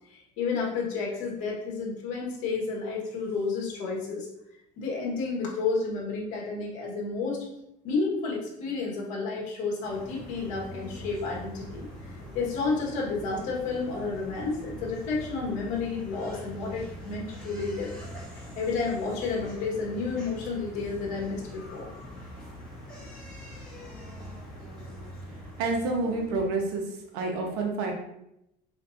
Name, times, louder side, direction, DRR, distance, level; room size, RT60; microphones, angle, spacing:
voice 1, 0.1-4.3 4.8-7.4 7.8-11.9 12.3-17.9 18.3-21.9, left 4 dB, 65° left, -2 dB, 1.4 m, -31 dB
sound 1, 9.8-26.5, equal, 5° left, 1.6 m, -43 dB
voice 2, 25.6-26.8 27.1-27.9, right 3 dB, 85° right, 1 dB, 1.1 m, -28 dB
4.4 x 4.3 x 2.5 m, 0.82 s
cardioid pair, 160°, 14 cm